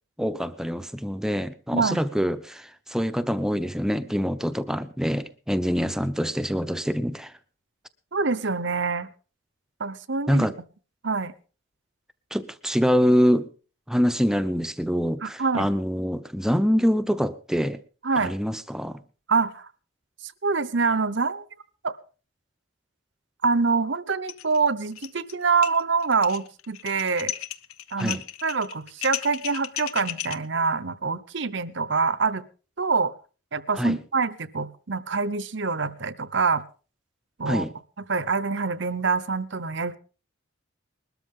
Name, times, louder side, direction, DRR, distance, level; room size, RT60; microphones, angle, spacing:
voice 1, 0.2-7.3 10.3-10.6 12.3-13.5 13.9-17.8 18.2-19.0 28.0-28.2 33.7-34.0 37.5-37.7, equal, ahead, 0.7 m, -25 dB
voice 2, 1.7-2.0 8.1-9.1 9.8-10.5 11.0-11.3 15.2-15.7 18.0-18.4 19.3-19.7 20.4-21.4 21.8-21.9 23.4-27.3 27.9-32.4 32.8-33.1 33.5-36.6 37.4-37.7 38.1-40.0, right 4 dB, 55° right, 0.8 m, -25 dB
sound 1, 24.3-24.6 24.9-25.3 25.6-30.4, left 12 dB, 80° left, 0.9 m, -34 dB
21.0 x 13.0 x 3.7 m
head